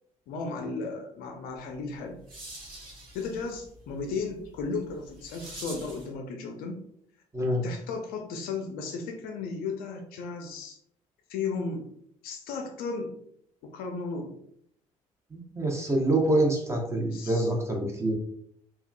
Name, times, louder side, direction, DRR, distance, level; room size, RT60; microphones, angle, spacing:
voice 1, 0.3-2.2 3.1-6.9 7.6-10.8 11.3-11.9 12.2-13.1 13.7-14.4 17.1-17.5, left 4 dB, 55° left, 3 dB, 0.5 m, -35 dB
sound 1, 1.7-6.2, right 2 dB, 55° right, 1.3 m, -46 dB
voice 2, 15.3-18.1, right 1 dB, 15° right, 0 dB, 0.8 m, -26 dB
3.4 x 2.3 x 2.2 m, 0.68 s
figure-of-eight pair, 50°, 18 cm